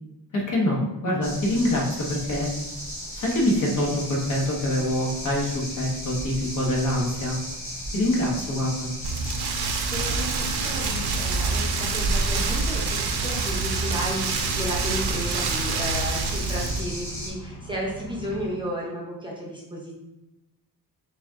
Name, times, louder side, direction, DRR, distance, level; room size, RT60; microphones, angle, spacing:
voice 1, 0.3-2.5 3.1-7.4 7.9-8.9, left 1 dB, 50° left, -3 dB, 1.2 m, -25 dB
sound 1, 1.2-17.3, equal, 35° left, 1.5 m, -36 dB
Rain, 9.0-16.8, right 4 dB, 75° right, 0.6 m, -26 dB
voice 2, 9.8-19.9, equal, 10° right, -5 dB, 0.7 m, -33 dB
sound 2, 9.9-18.6, right 1 dB, 80° left, 0.7 m, -41 dB
4.0 x 2.7 x 3.6 m, 0.96 s
wide cardioid pair, 145°, 39 cm